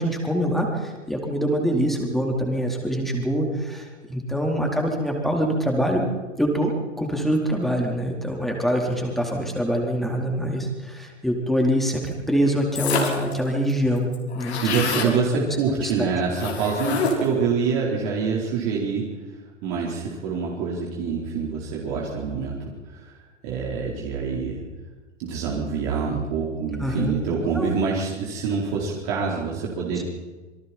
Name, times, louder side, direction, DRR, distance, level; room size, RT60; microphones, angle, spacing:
voice 1, 0.0-6.0 6.4-6.7 7.0-14.1 14.3-15.4 15.8-16.1 26.8-27.1 27.5-27.7, equal, ahead, 0 dB, 4.2 m, -24 dB
sound 1, 12.7-13.3 13.7-13.8 14.0-15.1 16.3-17.4, left 4 dB, 60° left, 5.1 m, -27 dB
voice 2, 14.6-19.1 19.6-22.6 22.9-23.1 23.4-24.6 25.2-30.0, right 5 dB, 40° right, -3 dB, 4.6 m, -26 dB
27.5 x 24.0 x 4.5 m, 1.3 s
figure-of-eight pair, 100°, 36 cm